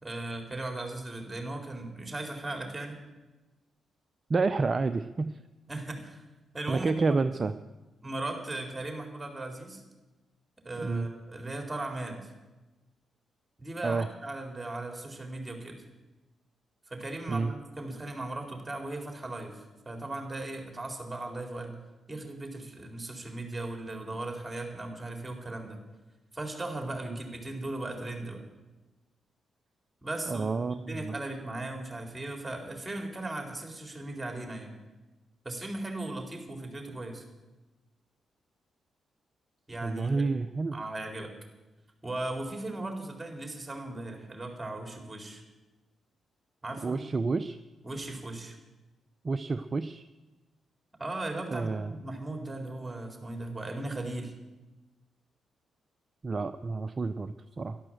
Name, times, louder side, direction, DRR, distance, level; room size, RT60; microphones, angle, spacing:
voice 1, 0.0-3.0 5.7-6.2 6.5-7.0 8.0-9.8 10.6-12.3 13.6-15.8 16.9-21.8 22.1-25.8 26.3-28.5 30.0-30.5 30.9-34.7 35.4-37.2 39.7-40.2 40.7-41.3 42.0-45.4 46.6-47.0 47.8-48.6 51.0-54.3, right 2 dB, 20° right, 3 dB, 4.3 m, -37 dB
voice 2, 4.3-5.4 6.7-7.5 10.8-11.1 13.8-14.1 17.3-17.5 27.1-27.2 30.3-31.1 39.8-40.8 46.8-47.6 49.2-50.0 51.5-51.9 56.2-57.8, right 4 dB, 40° right, 11 dB, 0.6 m, -29 dB
12.0 x 12.0 x 7.9 m, 1.1 s
hypercardioid pair, 40°, 0 cm